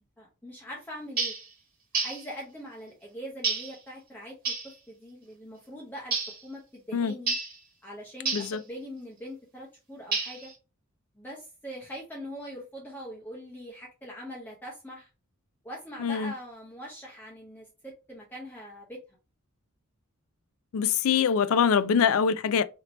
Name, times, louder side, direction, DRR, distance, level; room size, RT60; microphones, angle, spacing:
voice 1, 0.2-1.3 1.9-7.4 7.8-10.5 11.1-15.1 15.6-19.0, equal, 10° left, 0.8 m, -42 dB
sound 1, 1.2-1.5 1.9-2.3 3.4-3.8 4.5-4.7 6.1-6.4 7.3-7.6 8.3-8.6 10.1-10.5, right 4 dB, 40° right, 1.5 m, -30 dB
voice 2, 16.0-16.3 20.7-22.6, left 7 dB, 70° left, 0.3 m, -24 dB
3.2 x 2.8 x 3.9 m
head